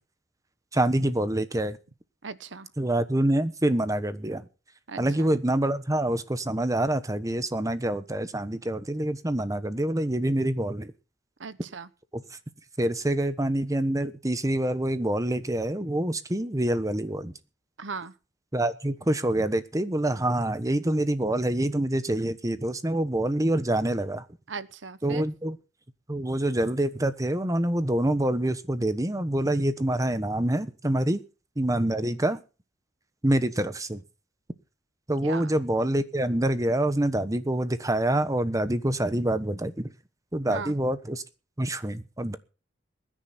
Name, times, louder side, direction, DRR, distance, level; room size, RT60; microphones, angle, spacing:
voice 1, 0.7-1.8 2.8-4.5 5.0-10.9 12.1-12.2 12.8-17.3 18.5-24.2 25.0-25.6 26.1-31.2 31.6-32.4 33.2-34.0 35.1-39.9 40.3-41.2 41.6-42.4, right 1 dB, 20° right, 12 dB, 1.1 m, -26 dB
voice 2, 2.2-2.7 4.9-5.3 11.4-11.9 17.8-18.1 24.5-25.3 35.2-35.5 40.5-40.7, right 4 dB, 90° right, 15 dB, 1.1 m, -37 dB
22.0 x 10.5 x 4.3 m, 0.34 s
head